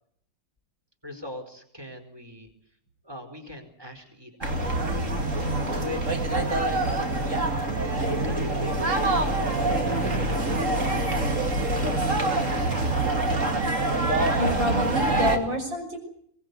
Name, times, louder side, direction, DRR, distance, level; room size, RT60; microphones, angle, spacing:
voice 1, 1.0-2.5 3.0-4.9 5.8-7.3 8.1-10.2 10.5-11.4 11.8-13.3, left 1 dB, 10° right, 4 dB, 4.4 m, -41 dB
sound 1, 4.4-15.4, right 2 dB, 35° right, 2.9 m, -25 dB
voice 2, 14.4-16.0, equal, 60° right, 4 dB, 7.1 m, -28 dB
23.5 x 19.5 x 8.3 m, 0.68 s
omnidirectional pair, 2.3 m